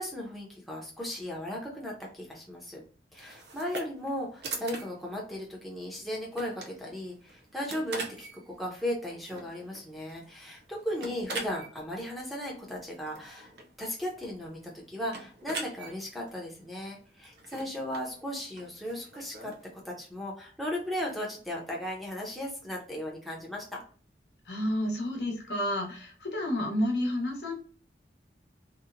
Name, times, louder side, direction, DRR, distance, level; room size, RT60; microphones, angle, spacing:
voice 1, 0.0-2.8 3.1-13.5 13.8-14.6 14.9-23.8, equal, ahead, -2 dB, 0.5 m, -36 dB
sound 1, 3.2-19.7, right 3 dB, 70° right, 0.5 m, -44 dB
voice 2, 24.4-27.5, left 1 dB, 75° left, -1 dB, 0.8 m, -30 dB
2.7 x 2.0 x 2.5 m, 0.43 s
head